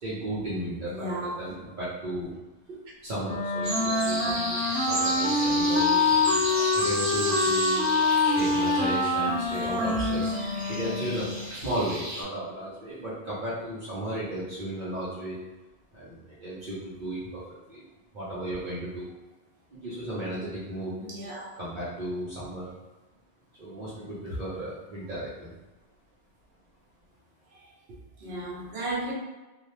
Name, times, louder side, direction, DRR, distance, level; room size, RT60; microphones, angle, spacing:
voice 1, 0.0-2.3 3.0-6.4 6.7-7.8 8.2-10.4 10.7-15.4 15.9-17.4 17.7-17.8 18.1-19.1 19.7-21.0 21.6-22.7 23.6-25.5, right 1 dB, 50° right, -10 dB, 0.9 m, -35 dB
voice 2, 1.0-1.3 2.7-2.8 4.3-4.4 21.1-21.5 28.2-29.1, right 2 dB, 75° right, -3 dB, 1.1 m, -34 dB
Wind instrument woodwind instrument, 3.2-11.5, left 3 dB, 45° left, 1.0 m, -25 dB
sound 1, 3.6-12.2, right 1 dB, 20° right, 0.6 m, -33 dB
2.7 x 2.5 x 3.2 m, 1.1 s
omnidirectional pair, 1.1 m